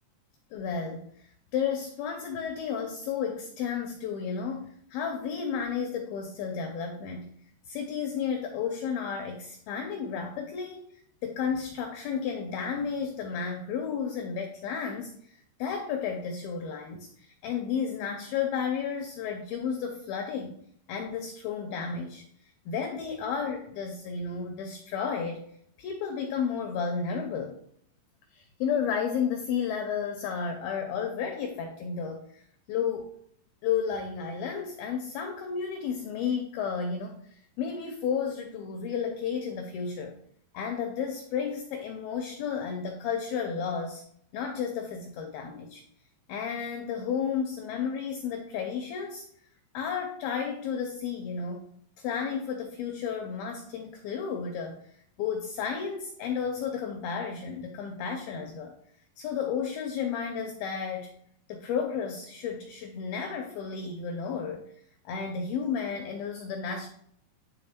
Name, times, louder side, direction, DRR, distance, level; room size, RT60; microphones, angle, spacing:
voice 1, 0.5-7.3 7.7-10.8 11.2-20.5 20.9-22.2 22.7-25.5 25.8-27.6 28.3-32.4 32.7-33.1 33.6-40.1 40.5-44.0 44.3-45.8 46.3-49.2 49.7-54.8 55.2-58.8 59.2-61.1 61.5-64.6 65.1-66.9, left 6 dB, 85° left, 5 dB, 2.1 m, -32 dB
9.8 x 3.6 x 4.3 m, 0.66 s
omnidirectional pair, 5.2 m